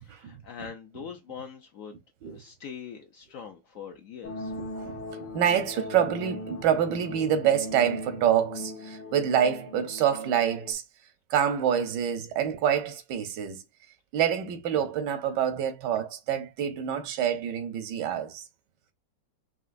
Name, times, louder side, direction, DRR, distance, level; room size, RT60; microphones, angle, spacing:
voice 1, 0.0-2.0 2.2-4.5, left 7 dB, 70° left, 0.8 m, -43 dB
sound 1, 4.2-10.7, left 2 dB, 90° left, 1.6 m, -39 dB
voice 2, 4.6-10.8 11.3-13.6 14.1-18.4, right 9 dB, 85° right, 1.3 m, -27 dB
5.5 x 2.8 x 2.5 m
omnidirectional pair, 1.9 m